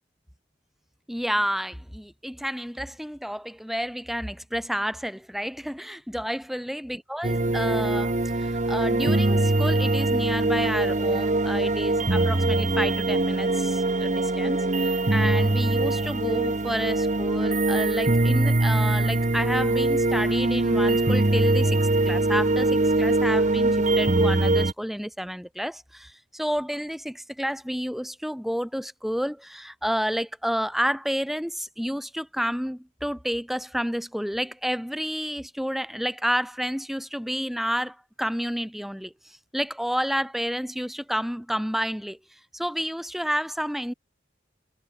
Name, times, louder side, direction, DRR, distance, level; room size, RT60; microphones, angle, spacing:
voice 1, 1.1-8.1 8.4-14.6 15.1-21.8 22.0-39.1 39.5-42.2 42.5-43.9, equal, ahead, 2.3 m, -30 dB
sound 1, 7.2-24.7, right 2 dB, 40° right, 1.2 m, -22 dB
head